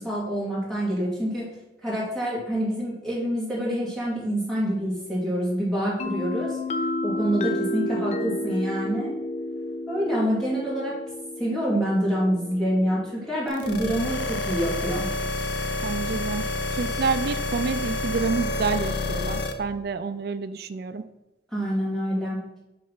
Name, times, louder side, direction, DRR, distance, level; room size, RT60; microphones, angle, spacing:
voice 1, 0.0-1.5 1.8-6.6 7.0-9.1 9.9-11.0 11.4-15.1 21.5-22.4, equal, ahead, -8 dB, 2.5 m, -26 dB
sound 1, 6.0-13.6, left 1 dB, 35° left, 0.3 m, -31 dB
sound 2, 13.5-19.5, left 2 dB, 65° left, 0.7 m, -28 dB
voice 2, 15.8-16.4 16.7-21.0, right 4 dB, 55° right, 10 dB, 0.4 m, -28 dB
6.3 x 3.4 x 5.6 m, 0.95 s
head